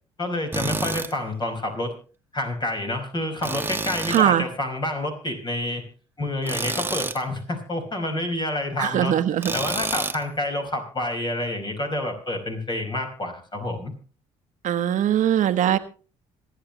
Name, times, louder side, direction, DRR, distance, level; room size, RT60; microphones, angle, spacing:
voice 1, 0.2-1.9 2.3-5.8 6.2-9.1 9.5-13.9, left 1 dB, 30° left, 3 dB, 5.2 m, -28 dB
Tools, 0.5-1.1 3.4-4.3 6.4-7.2 9.4-10.2, right 3 dB, 15° right, 1.1 m, -29 dB
voice 2, 4.1-4.4 8.8-9.5 14.6-15.8, right 10 dB, 60° right, 11 dB, 1.2 m, -21 dB
26.5 x 9.6 x 3.1 m, 0.37 s
hypercardioid pair, 65°, 15 cm